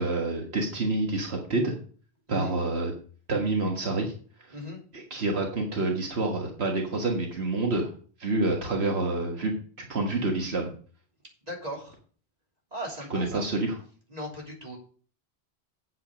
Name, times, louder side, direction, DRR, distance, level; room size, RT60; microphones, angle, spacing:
voice 1, 0.0-1.7 2.3-2.9 3.3-4.1 4.9-7.9 8.2-10.7 13.1-13.8, right 2 dB, 80° right, 1 dB, 1.8 m, -28 dB
voice 2, 11.5-12.0 12.7-13.5 14.1-14.8, equal, 40° right, -2 dB, 3.4 m, -37 dB
8.4 x 8.3 x 5.1 m, 0.43 s
omnidirectional pair, 1.1 m